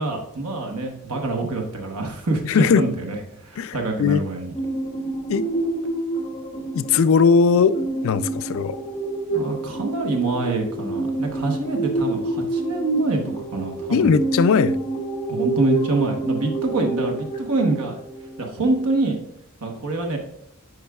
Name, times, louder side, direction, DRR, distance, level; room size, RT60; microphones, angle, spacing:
voice 1, 0.0-2.4 2.7-4.5 9.3-14.1 15.3-17.9 18.4-19.2 19.6-20.2, right 2 dB, 90° right, 1.0 m, -25 dB
voice 2, 2.4-2.8 3.6-4.2 5.3-5.4 6.7-7.8 8.0-8.8 13.9-14.8, left 5 dB, 65° left, 0.4 m, -18 dB
sound 1, 4.5-19.0, right 2 dB, 25° left, 1.5 m, -28 dB
9.4 x 4.7 x 2.3 m
head